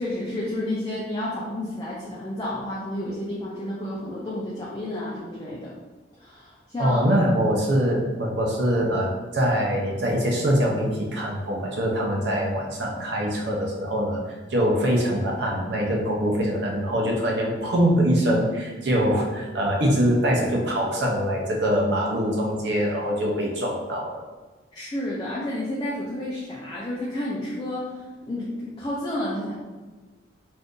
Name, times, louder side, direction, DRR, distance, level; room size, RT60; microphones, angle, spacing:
voice 1, 0.0-5.7 6.2-7.0 24.7-29.5, left 1 dB, 20° left, -6 dB, 0.4 m, -31 dB
voice 2, 6.8-24.2, equal, 60° right, -1 dB, 0.6 m, -23 dB
2.6 x 2.5 x 3.6 m, 1.3 s
head